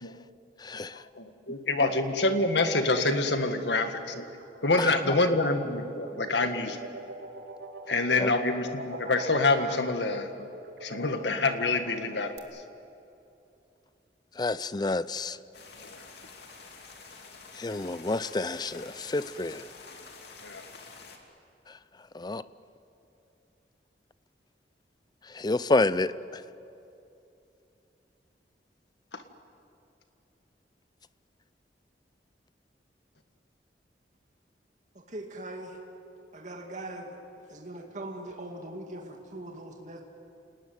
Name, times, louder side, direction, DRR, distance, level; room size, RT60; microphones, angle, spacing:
voice 1, 0.6-1.0 4.8-5.2 8.2-8.3 14.4-15.4 17.6-19.6 22.1-22.4 25.3-26.4, left 2 dB, 25° left, 16 dB, 0.5 m, -29 dB
voice 2, 1.2-4.2 4.6-6.8 7.9-10.3 10.8-12.4 15.8-16.0 20.4-20.6, left 2 dB, 80° left, 7 dB, 1.8 m, -26 dB
sound 1, 3.9-12.4, right 2 dB, 85° right, 2.3 m, -44 dB
sound 2, 15.5-21.2, left 4 dB, 65° left, 2.9 m, -48 dB
voice 3, 34.9-35.8 36.3-37.2 37.5-40.0, right 1 dB, 45° right, 1 dB, 2.5 m, -41 dB
28.0 x 19.0 x 9.4 m, 2.8 s
head